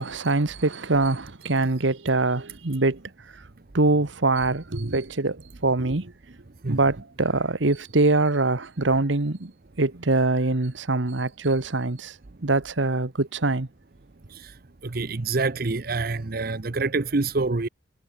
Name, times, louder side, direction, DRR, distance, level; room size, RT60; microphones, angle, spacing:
voice 1, 0.0-3.0 3.7-6.1 6.7-9.5 9.8-12.1 12.4-13.7, right 2 dB, 70° right, 1.4 m, -23 dB
voice 2, 14.8-17.7, right 3 dB, 50° right, 0.8 m, -26 dB
head